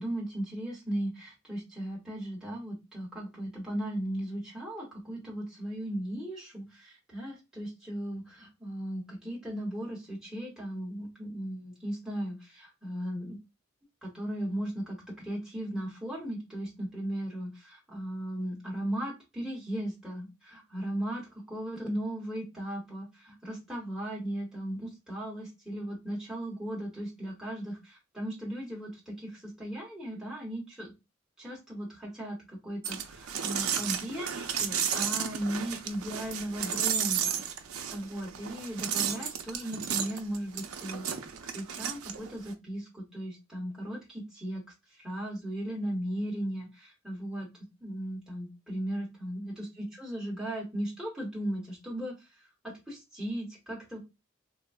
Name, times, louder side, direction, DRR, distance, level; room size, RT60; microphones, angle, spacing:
voice 1, 0.0-13.4 14.0-30.9 31.4-37.4 37.9-44.6 45.0-47.5 47.8-52.1 52.6-54.0, right 1 dB, 5° right, -4 dB, 1.0 m, -37 dB
sound 1, 32.8-42.5, right 8 dB, 90° right, 0.4 m, -33 dB
3.5 x 2.2 x 2.3 m, 0.24 s
head